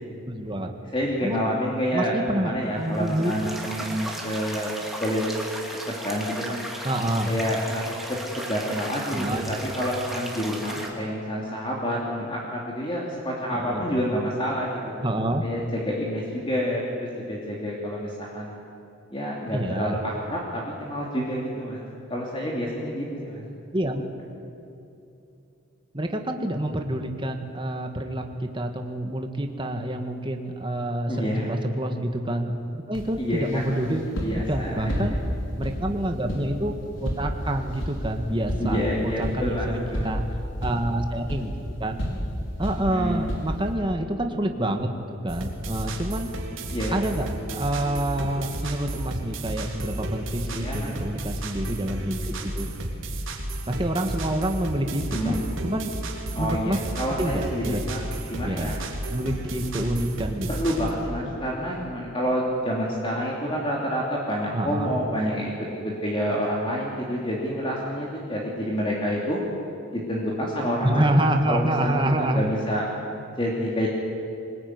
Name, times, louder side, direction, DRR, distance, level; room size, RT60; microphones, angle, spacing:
voice 1, 0.3-0.7 1.2-1.5 1.9-3.3 6.8-7.3 9.1-9.5 13.5-13.9 15.0-15.4 19.5-20.0 23.7-24.0 25.9-34.2 34.5-35.2 35.6-40.2 40.6-41.5 41.8-42.0 42.6-44.9 45.2-46.3 46.9-52.7 53.7-55.9 56.4-56.8 57.1-57.9 58.4-58.7 59.1-60.5 64.5-64.9 70.8-72.4, right 1 dB, 25° right, 4 dB, 1.7 m, -27 dB
voice 2, 0.9-4.7 5.0-5.4 5.9-6.6 7.3-14.9 15.4-18.5 19.1-21.8 22.1-23.4 31.1-31.5 33.2-33.8 34.2-35.1 38.6-40.2 42.9-43.2 46.6-47.0 50.5-50.9 55.1-55.4 56.3-58.0 58.3-58.8 59.7-59.8 60.5-69.4 69.9-72.8 73.4-73.9, equal, 25° left, -3 dB, 3.1 m, -28 dB
sound 1, 2.8-10.9, right 1 dB, ahead, 2.8 m, -36 dB
sound 2, 32.9-43.7, equal, 60° left, 5.4 m, -32 dB
sound 3, 45.3-60.9, right 1 dB, 70° right, 3.4 m, -33 dB
24.5 x 20.5 x 9.7 m, 2.8 s
head